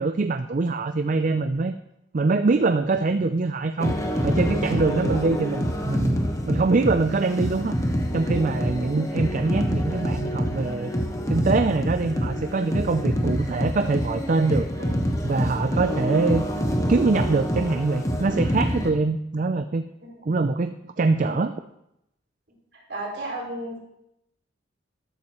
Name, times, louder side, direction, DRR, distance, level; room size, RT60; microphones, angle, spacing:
voice 1, 0.0-1.7 2.1-4.0 4.2-6.2 6.5-7.7 8.1-10.9 11.3-14.7 15.2-16.4 16.9-19.8 20.2-21.5, right 3 dB, 45° right, 9 dB, 0.4 m, -23 dB
sound 1, 3.8-18.9, equal, 15° left, 1.1 m, -26 dB
voice 2, 22.9-23.8, right 1 dB, 60° right, -4 dB, 5.2 m, -33 dB
13.0 x 12.0 x 3.1 m, 0.82 s
head